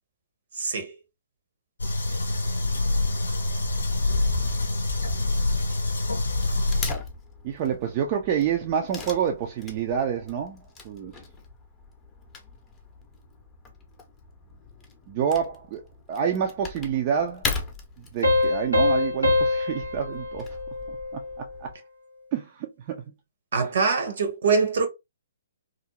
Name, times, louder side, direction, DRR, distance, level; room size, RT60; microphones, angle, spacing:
voice 1, 0.5-1.0 23.5-24.9, right 5 dB, 60° right, 0.8 m, -23 dB
sound 1, 1.8-6.9, left 2 dB, 80° left, 0.5 m, -26 dB
Wood / Tearing, 2.1-21.7, left 4 dB, 15° left, 0.6 m, -39 dB
voice 2, 7.4-11.2 15.1-17.5 18.1-20.5 20.9-21.7 22.3-23.0, right 8 dB, 35° right, 0.3 m, -28 dB
sound 2, 18.2-21.5, left 2 dB, 90° right, 0.8 m, -24 dB
2.4 x 2.0 x 2.9 m
figure-of-eight pair, 130°, 0 cm